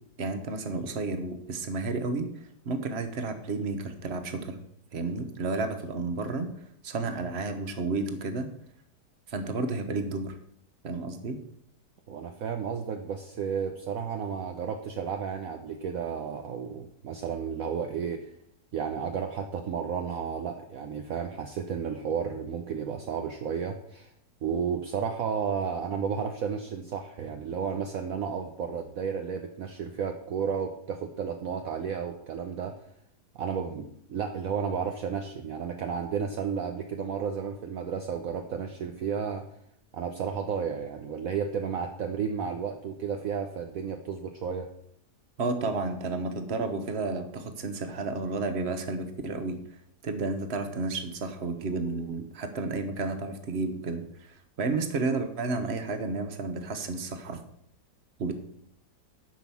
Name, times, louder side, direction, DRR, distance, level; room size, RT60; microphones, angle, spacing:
voice 1, 0.2-2.3 2.6-4.6 4.9-8.5 9.3-10.4 10.8-11.4 45.4-49.8 50.0-57.4 58.2-58.4, right 3 dB, 40° right, 8 dB, 1.3 m, -32 dB
voice 2, 12.1-18.3 18.7-24.1 24.4-32.8 33.3-39.5 39.9-44.7, right 7 dB, 60° right, 5 dB, 1.2 m, -32 dB
10.5 x 6.0 x 7.1 m, 0.71 s
omnidirectional pair, 1.8 m